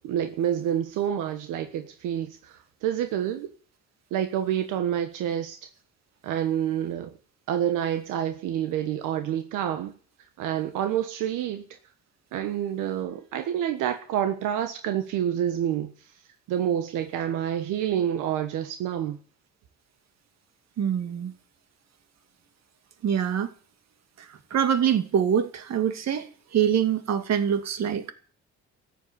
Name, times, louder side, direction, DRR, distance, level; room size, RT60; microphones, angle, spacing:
voice 1, 0.0-3.5 4.1-5.6 6.2-7.1 7.5-9.9 10.4-11.6 12.3-15.9 16.5-19.2, right 10 dB, 90° right, 7 dB, 1.4 m, -28 dB
voice 2, 20.8-21.3 23.0-23.5 24.2-28.1, right 8 dB, 60° right, 9 dB, 2.2 m, -25 dB
14.0 x 8.5 x 9.7 m, 0.43 s
cardioid pair, 90°, 31 cm